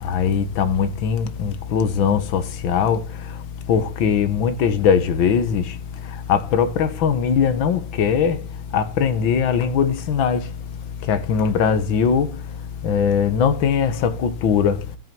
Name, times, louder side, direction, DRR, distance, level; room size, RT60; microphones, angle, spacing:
voice 1, 0.0-3.1 3.7-5.8 6.1-8.4 8.7-10.5 11.0-12.4 12.8-14.8, left 7 dB, 70° left, 1.8 m, -20 dB
14.0 x 7.7 x 4.5 m
omnidirectional pair, 2.3 m